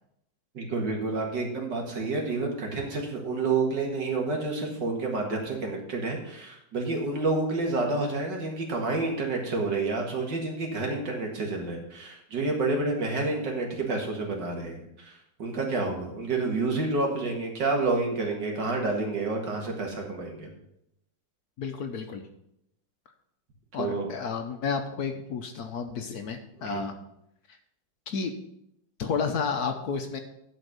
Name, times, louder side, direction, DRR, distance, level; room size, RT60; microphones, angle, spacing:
voice 1, 0.5-20.5 23.8-24.1 26.6-26.8, right 3 dB, 65° right, 0 dB, 2.4 m, -29 dB
voice 2, 21.6-22.2 23.7-26.9 28.1-28.3 29.0-30.2, left 5 dB, 65° left, 6 dB, 1.2 m, -31 dB
11.0 x 4.5 x 6.5 m, 0.80 s
omnidirectional pair, 2.1 m